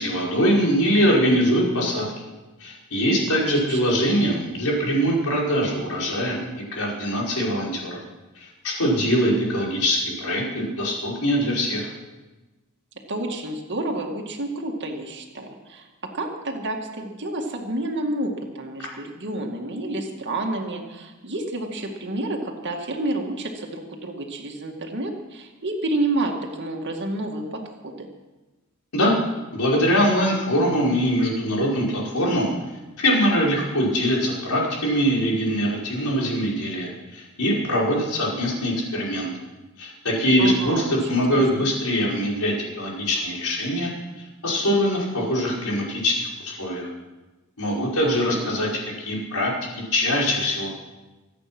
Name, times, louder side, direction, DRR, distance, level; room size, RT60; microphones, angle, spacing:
voice 1, 0.0-2.1 2.6-6.4 6.7-8.0 8.4-11.9 28.9-29.1 29.5-32.5 33.0-39.3 39.8-43.9 44.2-46.9 47.6-48.7 49.0-50.7, equal, 80° left, -3 dB, 5.2 m, -23 dB
voice 2, 3.3-3.9 13.1-15.9 16.1-28.1 40.4-41.7 48.0-48.4, right 2 dB, 55° right, 1 dB, 2.1 m, -30 dB
25.0 x 8.9 x 6.1 m, 1.1 s
head